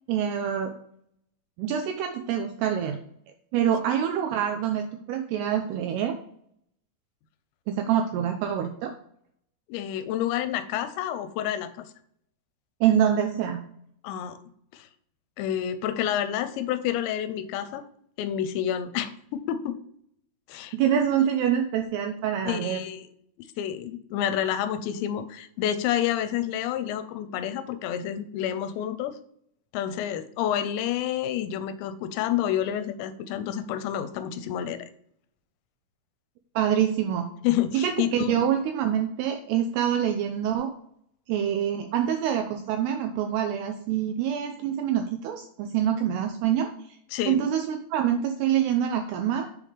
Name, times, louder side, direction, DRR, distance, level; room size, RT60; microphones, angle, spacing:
voice 1, 0.1-0.7 1.6-3.0 3.5-6.2 7.7-8.9 12.8-13.6 20.7-22.8 36.6-37.3 37.7-40.7 41.3-46.7 47.3-49.5, right 9 dB, 85° right, 5 dB, 2.4 m, -25 dB
voice 2, 9.7-11.9 14.0-14.4 14.7-14.9 15.4-17.8 18.2-19.7 20.5-20.8 22.5-23.1 23.6-29.2 29.7-34.9 37.4-38.4 47.1-47.4, left 10 dB, 85° left, 11 dB, 2.8 m, -29 dB
7.0 x 3.6 x 4.9 m, 0.68 s
omnidirectional pair, 5.1 m